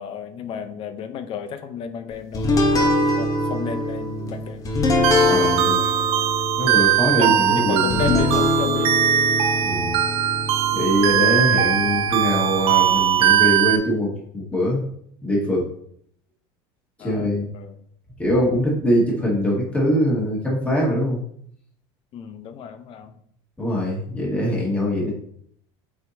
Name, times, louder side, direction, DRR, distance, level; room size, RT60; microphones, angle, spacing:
voice 1, 0.0-2.5 2.8-4.6 7.1-8.9 11.1-11.3 17.0-17.3 17.5-17.8 22.1-23.1, left 7 dB, 40° left, 9 dB, 0.8 m, -32 dB
sound 1, 2.3-13.0, left 2 dB, 25° left, 1.1 m, -24 dB
sound 2, 5.0-13.8, right 11 dB, 50° right, 0.8 m, -20 dB
voice 2, 5.3-5.8 6.6-8.0 9.6-10.0 10.7-14.8 15.2-15.7 17.0-17.4 18.2-21.2 23.6-25.1, equal, 10° left, -4 dB, 2.0 m, -22 dB
8.5 x 4.6 x 2.9 m, 0.66 s
supercardioid pair, 130°, 13 cm